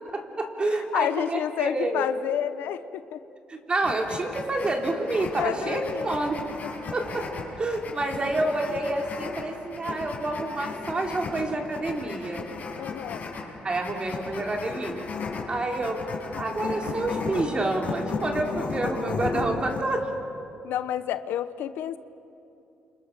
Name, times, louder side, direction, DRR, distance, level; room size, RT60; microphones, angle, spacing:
voice 1, 0.1-2.0 3.5-6.4 6.9-7.3 7.6-12.4 13.6-15.1 15.5-16.0 16.4-20.1, right 2 dB, 30° right, 2 dB, 3.8 m, -28 dB
voice 2, 0.9-3.2 5.3-6.1 6.6-6.7 12.8-13.3 20.6-22.0, left 11 dB, 85° left, 12 dB, 1.0 m, -30 dB
sound 1, 3.8-19.8, left 4 dB, 50° left, 5.9 m, -35 dB
29.5 x 27.0 x 6.9 m, 2.7 s
cardioid pair, 100°, 3 cm